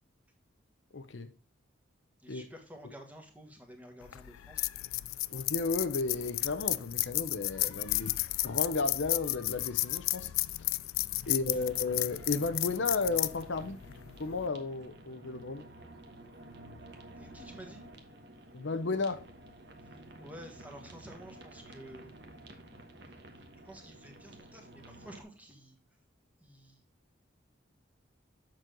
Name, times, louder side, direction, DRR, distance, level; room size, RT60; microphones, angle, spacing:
voice 1, 0.9-1.3 2.3-2.4 5.3-10.3 11.3-13.8 14.2-15.6 18.5-19.2, left 3 dB, 65° left, 0.7 m, -33 dB
voice 2, 2.2-4.6 11.5-11.7 17.1-17.8 20.2-22.5 23.0-23.1 23.6-25.8 26.4-26.8, right 1 dB, 5° right, 1.4 m, -51 dB
sound 1, 4.0-14.5, left 19 dB, 85° left, 0.3 m, -33 dB
sound 2, 11.5-25.2, right 1 dB, 55° right, 1.2 m, -52 dB
7.5 x 6.3 x 3.7 m
head